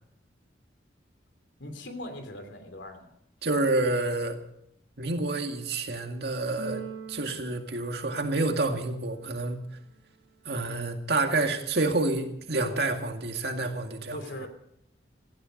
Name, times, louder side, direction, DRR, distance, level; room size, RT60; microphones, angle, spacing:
voice 1, 1.6-3.1 14.1-14.5, left 1 dB, 85° left, 7 dB, 3.0 m, -40 dB
voice 2, 3.4-4.4 5.0-6.8 7.1-9.6 10.5-14.2, right 2 dB, 60° right, 4 dB, 2.1 m, -28 dB
Keyboard (musical), 6.6-8.7, right 6 dB, 85° right, 1.6 m, -42 dB
17.5 x 15.0 x 5.3 m, 0.74 s
head